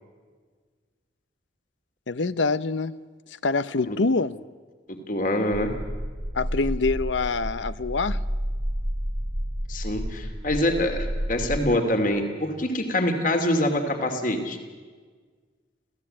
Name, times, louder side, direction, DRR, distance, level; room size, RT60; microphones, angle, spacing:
voice 1, 2.1-3.0 3.4-4.4 6.3-8.2, left 3 dB, 85° left, 16 dB, 0.8 m, -25 dB
voice 2, 4.9-5.7 9.7-14.6, left 1 dB, 45° left, 6 dB, 2.7 m, -25 dB
sound 1, 5.5-11.6, equal, 40° right, 1.7 m, -30 dB
27.5 x 16.5 x 8.7 m, 1.5 s
head